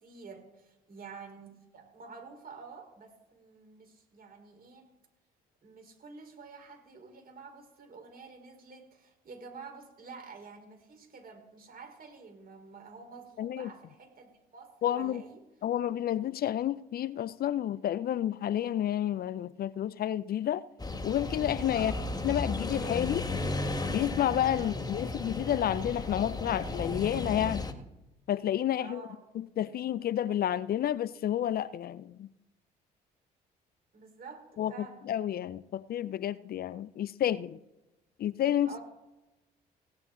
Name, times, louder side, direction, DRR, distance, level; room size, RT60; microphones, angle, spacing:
voice 1, 0.0-4.9 5.6-15.4 21.7-22.0 24.6-24.8 28.8-29.2 33.9-35.1 38.6-38.8, right 4 dB, 50° right, 4.3 m, -49 dB
voice 2, 13.4-13.7 14.8-15.2 15.6-20.6 21.0-21.9 22.2-23.3 23.9-27.7 28.3-29.0 29.3-32.3 34.6-37.6 38.2-38.7, left 11 dB, 50° left, 0.5 m, -30 dB
sound 1, 20.8-27.7, left 2 dB, 20° left, 1.7 m, -34 dB
17.5 x 9.4 x 3.9 m
hypercardioid pair, 50°, 19 cm